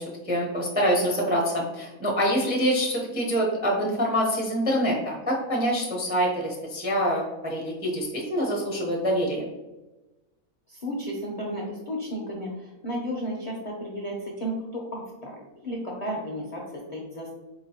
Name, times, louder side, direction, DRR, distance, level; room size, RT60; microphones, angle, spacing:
voice 1, 0.0-9.4, equal, 15° right, -2 dB, 0.3 m, -25 dB
voice 2, 10.7-17.3, equal, 50° left, -3 dB, 0.4 m, -33 dB
4.5 x 2.9 x 2.8 m, 1.1 s
omnidirectional pair, 1.5 m